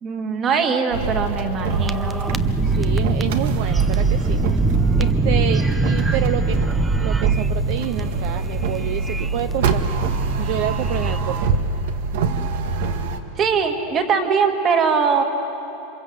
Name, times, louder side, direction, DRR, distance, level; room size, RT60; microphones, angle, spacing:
voice 1, 0.0-2.2 13.4-15.2, right 5 dB, 25° right, 6 dB, 1.9 m, -21 dB
sound 1, 0.9-13.2, right 3 dB, 70° right, 1.6 m, -25 dB
sound 2, 1.7-11.6, right 3 dB, 5° right, 0.5 m, -23 dB
voice 2, 2.6-4.4 5.0-6.6 6.9-9.9 10.4-11.6, right 12 dB, 50° right, 10 dB, 0.7 m, -28 dB
27.5 x 25.5 x 8.0 m, 2.9 s
supercardioid pair, 165°, 0 cm